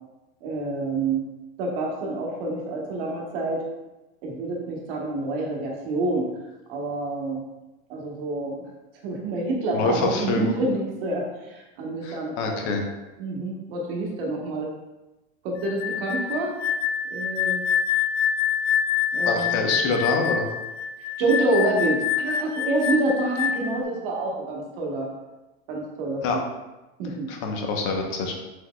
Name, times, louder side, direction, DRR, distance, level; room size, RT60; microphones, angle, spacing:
voice 1, 0.4-1.2 1.6-3.6 4.2-6.3 6.7-7.4 7.9-8.7 9.0-12.8 13.2-14.7 15.4-16.5 17.1-17.6 19.1-19.7 21.0-25.1 25.7-26.4 27.0-27.3, right 2 dB, 65° right, -1 dB, 1.0 m, -27 dB
voice 2, 9.7-10.6 12.0-12.8 19.3-20.5 26.2-26.4 27.3-28.3, left 3 dB, 50° left, 2 dB, 0.8 m, -26 dB
sound 1, 15.6-23.8, left 8 dB, 85° left, 0.5 m, -26 dB
4.8 x 3.9 x 2.2 m, 1.0 s
supercardioid pair, 155°, 31 cm